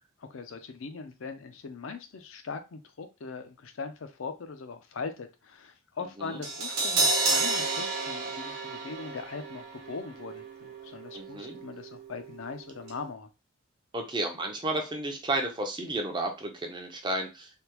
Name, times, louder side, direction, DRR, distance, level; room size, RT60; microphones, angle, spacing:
voice 1, 0.3-13.3, left 4 dB, 65° left, 8 dB, 0.5 m, -40 dB
Crash cymbal, 6.4-12.6 12.9-13.0, right 3 dB, 55° right, 1.0 m, -31 dB
voice 2, 11.1-11.6 13.9-17.5, right 2 dB, 20° right, 3 dB, 0.6 m, -32 dB
3.4 x 2.2 x 2.9 m, 0.27 s
head